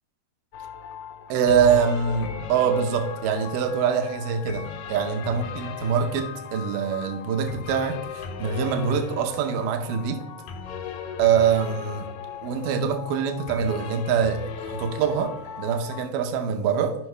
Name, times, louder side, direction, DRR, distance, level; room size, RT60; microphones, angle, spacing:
sound 1, 0.5-16.0, left 6 dB, 70° left, 1.9 m, -37 dB
voice 1, 1.3-10.2 11.2-12.1 12.4-15.3 15.6-17.0, right 7 dB, 75° right, 6 dB, 2.5 m, -24 dB
13.5 x 5.7 x 3.3 m, 0.79 s
omnidirectional pair, 3.9 m